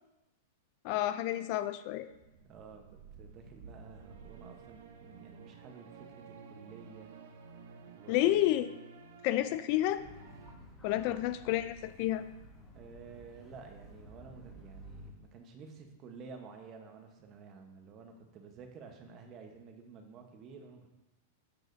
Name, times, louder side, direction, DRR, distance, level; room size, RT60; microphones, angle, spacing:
voice 1, 0.8-2.1 8.1-8.7 9.2-10.0 10.8-12.2, left 13 dB, 45° left, 12 dB, 0.3 m, -30 dB
sound 1, 1.9-10.6, right 5 dB, 75° right, 0.7 m, -53 dB
voice 2, 2.5-6.2 6.5-7.1 7.8-8.5 10.9-11.2 12.7-20.9, right 5 dB, 30° right, 4 dB, 0.9 m, -51 dB
sound 2, 10.0-15.1, right 1 dB, 10° left, 1.4 m, -53 dB
12.5 x 4.8 x 2.6 m, 0.98 s
supercardioid pair, 160°, 0 cm